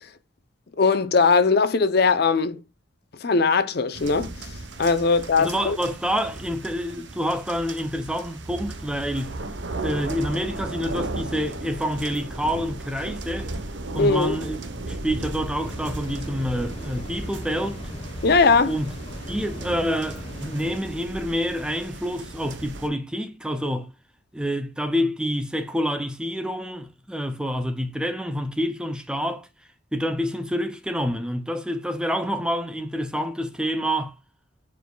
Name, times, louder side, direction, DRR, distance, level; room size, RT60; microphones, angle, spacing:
voice 1, 0.8-2.6 3.2-4.3 4.8-5.8 14.0-14.4 18.2-18.7, left 4 dB, 50° left, 0.5 m, -19 dB
sound 1, 3.9-22.9, right 2 dB, 65° right, 0.9 m, -35 dB
voice 2, 5.4-9.4 9.8-13.5 13.9-17.8 18.7-18.9 19.3-23.9 24.3-29.5 29.9-34.2, equal, 5° right, 0.5 m, -27 dB
sound 2, 15.6-20.8, left 1 dB, 30° left, 1.1 m, -39 dB
9.2 x 4.6 x 2.3 m
head